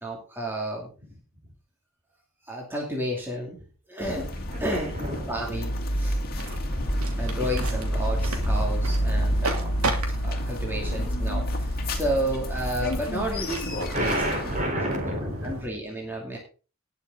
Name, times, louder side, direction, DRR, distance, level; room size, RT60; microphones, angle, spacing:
voice 1, 0.0-0.9 2.4-3.6 3.9-4.3 4.6-5.0 5.3-6.2 7.2-9.7 10.1-14.2 14.6-15.0 15.4-16.4, right 1 dB, 10° right, -3 dB, 2.7 m, -31 dB
sound 1, 4.0-14.6, equal, 45° left, 2.2 m, -28 dB
voice 2, 4.5-5.3 10.6-11.1 13.9-15.7, equal, 35° right, 3 dB, 4.2 m, -30 dB
sound 2, 6.4-15.7, right 2 dB, 85° right, 3.0 m, -36 dB
19.5 x 6.7 x 3.9 m, 0.36 s
head